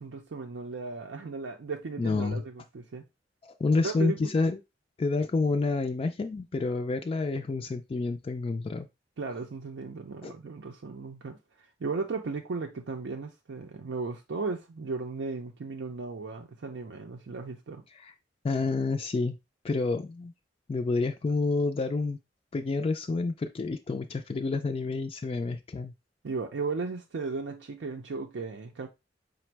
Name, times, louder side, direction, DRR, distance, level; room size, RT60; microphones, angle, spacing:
voice 1, 0.0-3.1 3.7-4.2 9.2-11.4 11.8-17.8 26.2-28.9, right 4 dB, 85° right, 0.5 m, -36 dB
voice 2, 2.0-2.4 3.4-4.6 5.0-8.9 10.2-10.3 17.9-18.1 18.4-19.4 19.6-20.3 20.7-22.2 22.5-25.9, left 3 dB, 30° left, 0.3 m, -29 dB
5.1 x 2.0 x 4.5 m
head